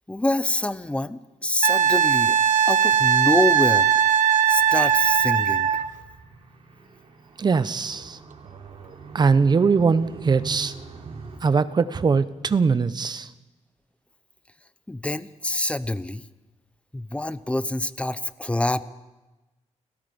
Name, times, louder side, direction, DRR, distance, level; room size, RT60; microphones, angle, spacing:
voice 1, 0.1-2.4 2.7-3.9 4.5-5.7 14.9-16.2 16.9-18.9, left 1 dB, 10° left, 15 dB, 0.6 m, -26 dB
Wind instrument woodwind instrument, 1.6-5.9 8.6-8.7, right 8 dB, 80° right, 1.3 m, -19 dB
Car, 4.5-11.4, right 4 dB, 50° right, 4.5 m, -42 dB
voice 2, 7.4-8.2 9.1-10.7 11.4-13.3, right 5 dB, 35° right, 13 dB, 0.8 m, -21 dB
29.5 x 17.5 x 5.3 m, 1.1 s
wide cardioid pair, 135°, 13 cm